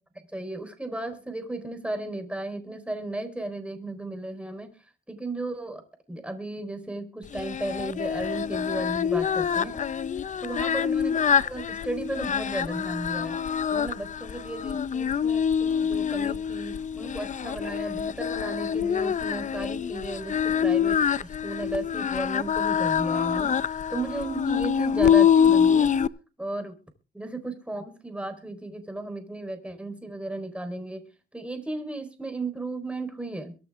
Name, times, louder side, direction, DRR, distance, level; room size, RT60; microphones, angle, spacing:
voice 1, 0.3-4.7 5.1-5.8 6.1-9.8 10.4-13.4 13.7-25.9 26.4-26.8 27.1-31.0 31.3-33.6, right 2 dB, 5° right, 7 dB, 4.4 m, -35 dB
Singing, 7.3-26.1, left 8 dB, 40° left, 0.7 m, -25 dB
23.0 x 9.2 x 3.7 m, 0.36 s
cardioid pair, 90°, 20 cm